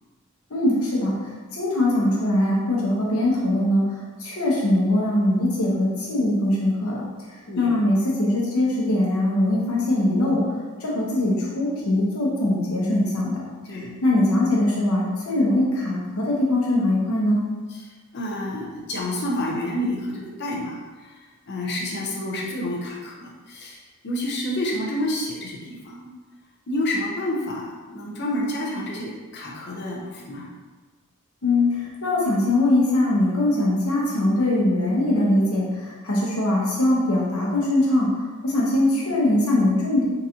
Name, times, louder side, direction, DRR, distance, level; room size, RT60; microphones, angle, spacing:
voice 1, 0.5-1.1 1.5-7.0 7.3-10.4 10.8-13.3 13.7-17.5 31.4-38.1 38.4-40.1, left 1 dB, 80° left, -4 dB, 1.0 m, -21 dB
voice 2, 13.7-14.0 17.7-26.1 26.7-30.5, left 1 dB, 50° left, -2 dB, 0.7 m, -29 dB
3.9 x 2.6 x 2.8 m, 1.4 s
head